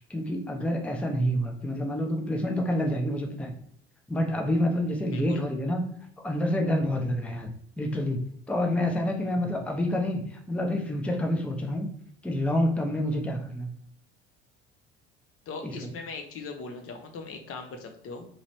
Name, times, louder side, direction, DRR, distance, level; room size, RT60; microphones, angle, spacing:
voice 1, 0.0-3.5 4.1-5.8 6.2-7.5 7.8-8.2 8.5-11.9 12.2-13.7 15.6-15.7, left 1 dB, 5° left, 2 dB, 0.6 m, -28 dB
voice 2, 5.1-5.4 15.5-18.3, left 3 dB, 45° left, 4 dB, 0.9 m, -39 dB
3.8 x 3.1 x 3.1 m, 0.66 s
figure-of-eight pair, 65°, 33 cm